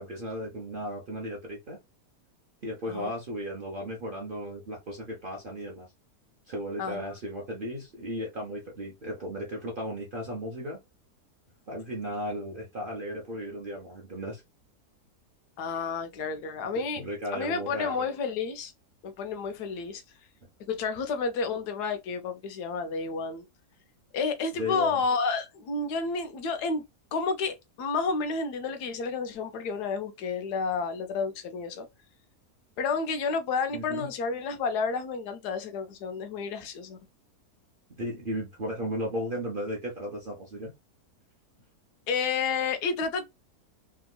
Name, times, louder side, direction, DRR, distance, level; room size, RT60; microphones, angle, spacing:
voice 1, 0.0-1.8 2.6-5.9 6.5-10.8 11.7-14.4 16.7-18.0 24.6-25.0 33.7-34.1 37.9-40.7, equal, 45° right, 0.8 m, -35 dB
voice 2, 6.8-7.1 15.6-17.0 17.3-18.7 19.0-20.0 20.7-23.4 24.1-31.9 32.8-37.0 42.1-43.3, left 4 dB, 85° left, 1.3 m, -30 dB
3.4 x 2.8 x 2.3 m
omnidirectional pair, 1.7 m